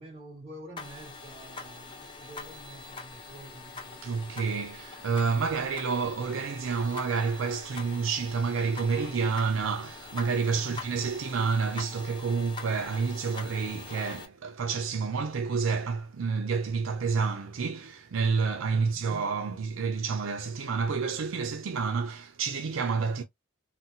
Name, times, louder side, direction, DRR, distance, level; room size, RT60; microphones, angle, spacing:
voice 1, 0.0-4.0 10.5-10.9 18.6-19.1, right 1 dB, 30° right, 2.0 m, -48 dB
sound 1, 0.8-14.3, left 3 dB, 25° left, 0.8 m, -44 dB
voice 2, 4.0-23.2, right 5 dB, 75° right, 0.5 m, -29 dB
3.9 x 2.0 x 2.7 m
head